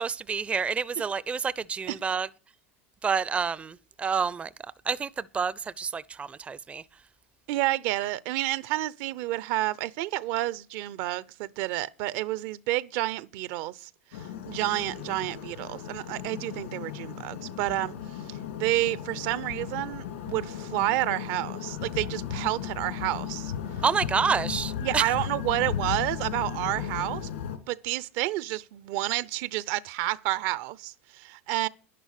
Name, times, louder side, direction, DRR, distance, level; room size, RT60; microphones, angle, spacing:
voice 1, 0.0-2.3 3.0-4.5 4.9-6.8 23.8-25.1, right 6 dB, 20° right, 0.5 m, -28 dB
voice 2, 7.5-17.9 18.6-23.5 24.8-27.3 27.7-31.7, right 16 dB, 60° right, 0.7 m, -30 dB
sound 1, 14.1-27.6, left 9 dB, 80° left, 3.0 m, -36 dB
11.0 x 10.0 x 6.6 m
hypercardioid pair, 105°, 7 cm